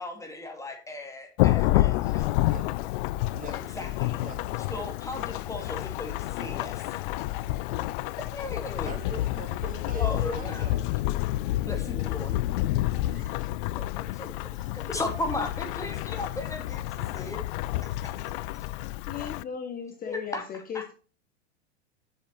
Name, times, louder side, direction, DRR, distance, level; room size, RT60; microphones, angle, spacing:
voice 1, 0.0-2.4 3.5-4.2 4.7-7.0 8.1-9.0 9.9-10.7 11.6-12.4 13.0-13.2 13.8-17.4 17.8-18.1 20.1-20.9, left 2 dB, 10° left, 4 dB, 2.3 m, -37 dB
Thunderstorm / Rain, 1.4-19.4, left 16 dB, 50° left, 0.5 m, -29 dB
voice 2, 2.4-2.8 3.4-3.9 4.2-4.4 8.8-10.8 12.8-13.5 14.6-14.7, right 3 dB, 25° right, 4 dB, 2.6 m, -42 dB
voice 3, 19.1-20.9, left 7 dB, 25° left, 5 dB, 1.3 m, -36 dB
7.5 x 7.3 x 4.4 m, 0.36 s
hypercardioid pair, 100°, 34 cm